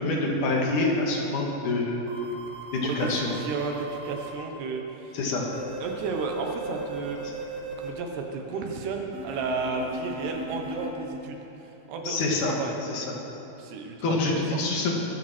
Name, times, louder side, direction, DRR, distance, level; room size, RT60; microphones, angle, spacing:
voice 1, 0.0-2.0 2.7-3.3 5.1-5.4 7.2-7.3 12.0-12.6 12.8-13.1 14.0-15.0, left 2 dB, 55° left, -1 dB, 2.9 m, -26 dB
sound 1, 2.1-4.3 5.5-7.9 9.1-10.9, right 3 dB, 50° right, 2.8 m, -37 dB
voice 2, 2.9-5.2 5.8-7.2 7.8-11.4 11.6-12.8 13.6-14.6, right 4 dB, 80° right, 3 dB, 3.3 m, -33 dB
21.5 x 13.0 x 4.5 m, 3.0 s
omnidirectional pair, 4.8 m